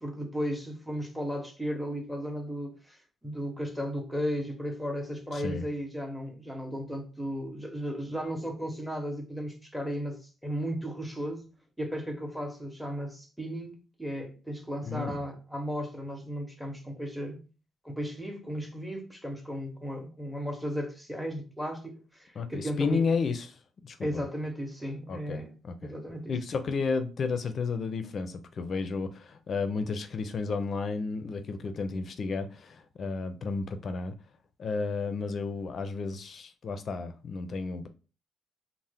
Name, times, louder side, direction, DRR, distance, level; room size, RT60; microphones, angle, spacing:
voice 1, 0.0-11.5 11.8-17.4 17.8-23.0 24.0-25.5 25.8-26.3, equal, ahead, 0.8 m, -35 dB
voice 2, 5.3-5.7 14.8-15.2 22.4-23.6 23.8-24.2 25.1-25.9 26.3-34.1 34.6-37.9, left 4 dB, 50° left, 0.4 m, -32 dB
2.7 x 2.1 x 3.4 m
cardioid pair, 90°, 0 cm